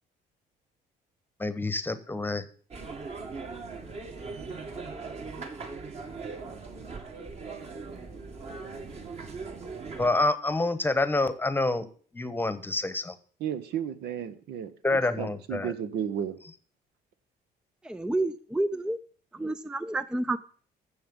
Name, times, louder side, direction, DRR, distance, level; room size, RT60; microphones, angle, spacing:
voice 1, 1.4-2.4 10.0-11.9 12.1-13.2 14.8-15.7, left 2 dB, 10° left, 13 dB, 1.1 m, -27 dB
sound 1, 2.7-10.1, right 4 dB, 40° right, 2.1 m, -39 dB
voice 2, 13.4-16.4, right 9 dB, 75° right, 11 dB, 1.2 m, -33 dB
voice 3, 17.8-19.0 19.3-20.4, right 2 dB, 5° right, 13 dB, 0.5 m, -29 dB
14.5 x 6.7 x 5.4 m, 0.44 s
cardioid pair, 110°, 17 cm